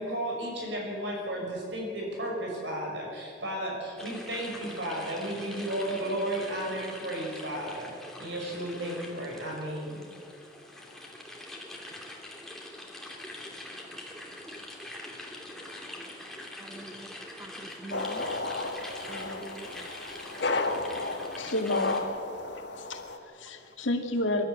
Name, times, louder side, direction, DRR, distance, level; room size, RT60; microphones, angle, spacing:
voice 1, 0.0-7.9 8.2-10.0, right 1 dB, 65° right, 6.4 m, -34 dB
sound 1, 4.0-22.0, left 1 dB, ahead, 2.7 m, -44 dB
voice 2, 16.6-18.2 19.1-19.8, right 2 dB, 15° right, 0.5 m, -46 dB
sound 2, 17.9-23.2, left 3 dB, 60° left, 1.6 m, -33 dB
voice 3, 20.8-22.1 22.8-24.4, left 1 dB, 80° left, 2.1 m, -31 dB
23.0 x 12.5 x 9.4 m
head